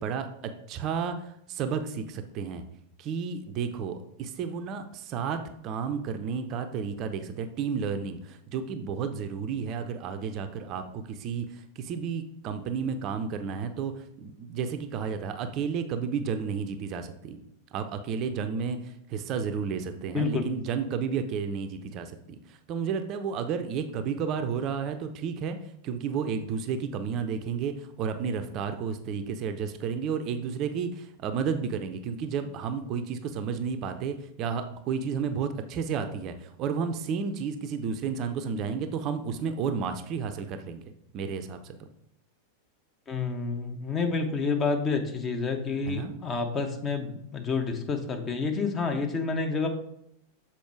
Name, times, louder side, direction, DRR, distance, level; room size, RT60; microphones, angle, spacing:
voice 1, 0.0-2.6 3.0-17.4 17.7-25.6 25.8-40.8 41.1-41.7 45.8-46.1, right 6 dB, 35° right, 8 dB, 0.6 m, -32 dB
voice 2, 20.1-20.5 43.1-49.7, left 4 dB, 25° left, 5 dB, 1.0 m, -29 dB
7.1 x 4.4 x 4.6 m, 0.76 s
figure-of-eight pair, 90°, 0 cm